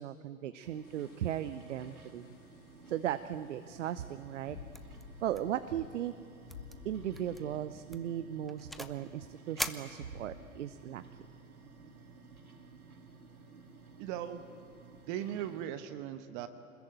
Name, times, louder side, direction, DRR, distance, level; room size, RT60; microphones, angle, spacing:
voice 1, 0.0-2.3 2.9-4.6 5.2-6.1 6.8-11.0, right 11 dB, 55° right, 12 dB, 1.0 m, -37 dB
sound 1, 0.6-15.7, right 4 dB, 85° right, 2.7 m, -54 dB
sound 2, 0.8-7.5, left 6 dB, 40° left, 4.4 m, -54 dB
sound 3, 4.7-5.0 5.3-5.6 5.9-6.0 6.5-6.8 7.2-7.4 7.9-9.0 9.6-10.6, equal, ahead, 0.5 m, -41 dB
voice 2, 14.0-14.4 15.0-16.5, right 10 dB, 35° right, 10 dB, 1.2 m, -38 dB
25.5 x 21.0 x 9.0 m, 2.7 s
figure-of-eight pair, 110°, 42 cm